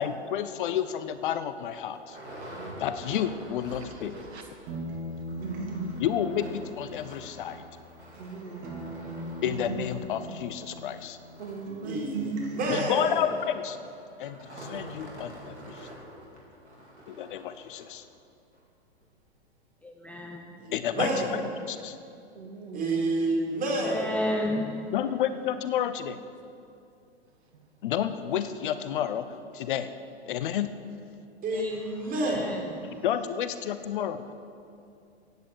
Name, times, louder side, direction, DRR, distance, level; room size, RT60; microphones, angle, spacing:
voice 1, 0.0-2.2 2.8-4.2 6.0-7.6 9.4-11.2 12.7-13.8 14.2-15.9 17.1-18.0 20.7-22.0 24.9-26.2 27.8-29.3 29.5-29.9 30.3-30.7 33.0-34.2, left 10 dB, 50° left, 12 dB, 0.8 m, -30 dB
sound 1, 0.6-0.8 1.3-1.4 1.6-4.5 4.8-4.9 5.2-18.0 18.5-18.6 19.0-19.1, right 1 dB, 85° right, 4.5 m, -46 dB
voice 2, 3.8-4.4 5.4-6.0 8.1-8.7 11.4-12.1 22.3-22.9, right 3 dB, 70° right, 3 dB, 2.3 m, -41 dB
sound 2, 4.7-8.3 8.6-11.4 11.7-12.7, right 2 dB, 45° right, 3.2 m, -38 dB
voice 3, 11.8-13.2 20.6-21.3 22.7-24.1 31.4-32.6, right 2 dB, 25° right, -2 dB, 4.1 m, -29 dB
voice 4, 19.8-20.6 23.8-25.0 31.5-33.0, left 1 dB, 5° left, 2 dB, 0.7 m, -33 dB
15.0 x 8.6 x 8.3 m, 2.5 s
figure-of-eight pair, 110°, 33 cm